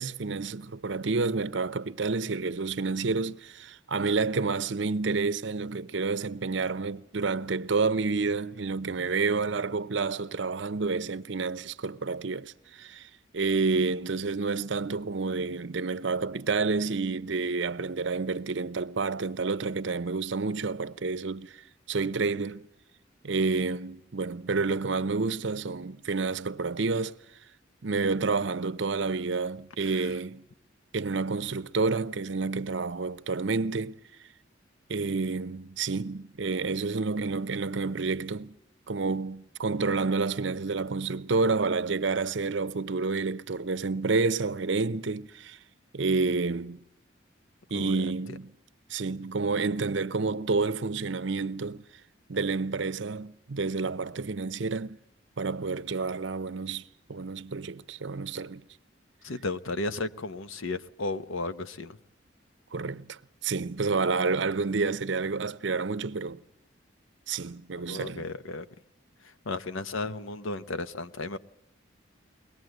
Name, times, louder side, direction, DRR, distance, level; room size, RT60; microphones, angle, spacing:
voice 1, 0.0-21.5 21.9-22.7 23.2-27.1 27.8-30.5 30.9-34.0 34.9-38.6 38.9-45.6 45.9-46.8 47.7-48.5 48.9-51.8 52.3-55.0 55.4-58.6 62.7-66.4 67.3-68.3, right 4 dB, 70° right, 0.7 m, -29 dB
voice 2, 47.7-48.1 59.2-62.0 67.9-68.7 69.2-71.4, left 2 dB, 90° left, 0.9 m, -34 dB
22.5 x 19.0 x 7.9 m
head